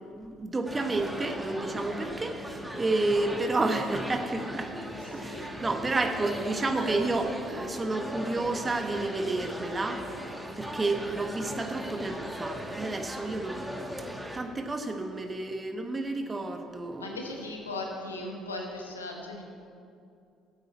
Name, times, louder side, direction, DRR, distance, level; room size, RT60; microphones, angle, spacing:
voice 1, 0.1-10.0 10.6-13.9 14.3-17.2, right 2 dB, 25° right, 5 dB, 1.2 m, -31 dB
sound 1, 0.7-14.4, equal, 5° right, 1.6 m, -38 dB
voice 2, 5.1-5.5 17.0-19.4, left 2 dB, 85° left, 1 dB, 1.1 m, -38 dB
13.5 x 8.4 x 4.2 m, 2.5 s
figure-of-eight pair, 50°, 0 cm